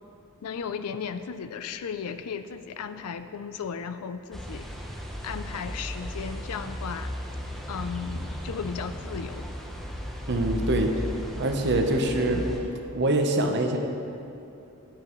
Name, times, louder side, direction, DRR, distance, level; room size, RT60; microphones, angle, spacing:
voice 1, 0.4-4.7 5.2-7.2 7.7-9.5, left 6 dB, 85° left, 10 dB, 0.4 m, -35 dB
sound 1, 4.3-12.6, equal, ahead, 0.8 m, -35 dB
voice 2, 10.3-11.0 11.4-12.5 12.9-13.8, right 1 dB, 50° right, 3 dB, 0.9 m, -24 dB
13.5 x 10.0 x 3.1 m, 2.8 s
head